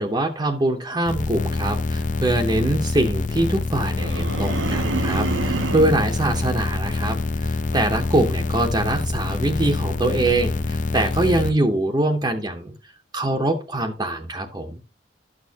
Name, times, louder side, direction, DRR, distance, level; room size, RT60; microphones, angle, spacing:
voice 1, 0.0-12.7 13.1-14.8, right 1 dB, 20° right, 2 dB, 0.7 m, -23 dB
sound 1, 1.1-11.5, left 3 dB, 45° left, 0.5 m, -25 dB
sound 2, 4.0-6.1, right 3 dB, 80° right, 0.6 m, -27 dB
12.0 x 6.3 x 2.7 m, 0.31 s
head